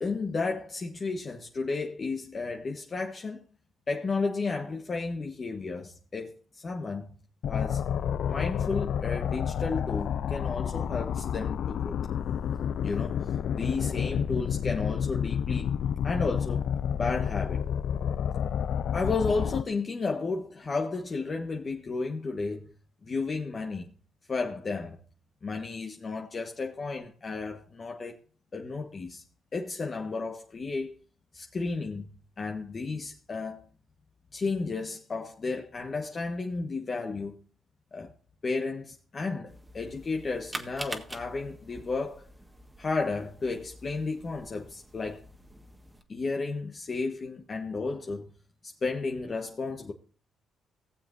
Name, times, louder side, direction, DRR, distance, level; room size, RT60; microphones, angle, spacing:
voice 1, 0.0-3.4 3.9-7.1 7.5-7.8 8.3-12.0 12.8-13.2 13.5-15.8 16.0-17.6 18.9-22.7 23.0-23.9 24.3-25.0 25.4-28.2 28.5-29.2 29.5-30.9 31.3-32.1 32.4-33.6 34.3-37.4 37.9-38.1 38.4-42.3 42.8-45.2 46.1-48.3 48.6-49.9, left 3 dB, 35° left, 1.3 m, -33 dB
sound 1, 7.4-19.6, left 8 dB, 70° left, 0.4 m, -30 dB
sound 2, 39.5-46.0, right 1 dB, 15° right, 1.5 m, -45 dB
18.5 x 7.4 x 2.6 m
cardioid pair, 90°, 0 cm